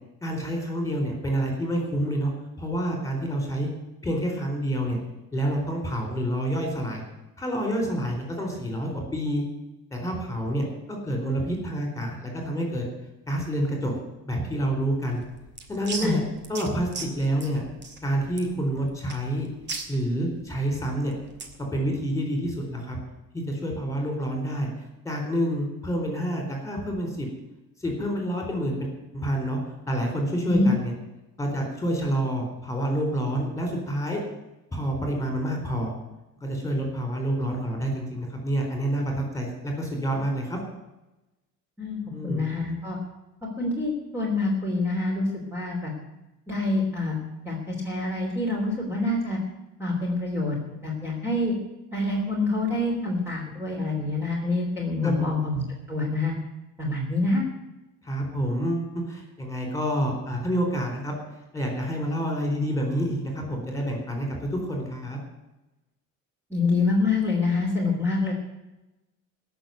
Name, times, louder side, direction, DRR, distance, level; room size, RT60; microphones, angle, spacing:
voice 1, 0.2-2.3 2.6-3.7 4.0-5.0 5.3-7.0 7.4-9.5 9.9-12.8 13.3-14.0 14.2-15.2 15.7-16.2 16.5-17.6 18.0-19.5 19.9-21.1 21.7-23.0 23.3-24.7 25.0-27.3 27.8-29.6 29.9-30.9 31.4-34.2 34.7-35.9 36.4-40.6 42.1-42.4 55.0-55.3 58.0-61.2 61.5-65.2, right 1 dB, 10° left, 2 dB, 4.1 m, -28 dB
sound 1, 15.1-21.6, right 4 dB, 30° right, 2.1 m, -39 dB
voice 2, 41.8-43.0 43.6-45.9 46.5-47.2 47.4-49.4 49.8-51.5 51.9-55.6 55.9-56.3 56.8-57.4 66.5-68.3, left 2 dB, 10° right, -3 dB, 3.3 m, -26 dB
16.5 x 6.8 x 9.2 m, 0.98 s
cardioid pair, 150°, 33 cm